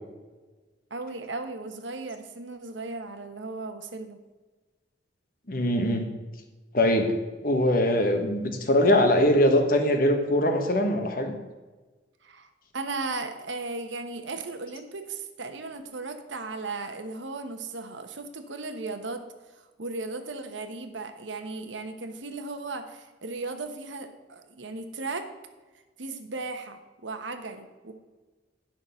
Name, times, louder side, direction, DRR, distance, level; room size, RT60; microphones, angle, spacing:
voice 1, 0.9-4.2 12.2-12.5 12.7-19.2 19.6-25.3 26.0-27.9, right 3 dB, 75° right, 7 dB, 1.1 m, -36 dB
voice 2, 5.5-6.1 6.7-7.1 7.4-11.4, left 1 dB, 45° left, 5 dB, 1.2 m, -22 dB
10.5 x 5.9 x 5.6 m, 1.3 s
head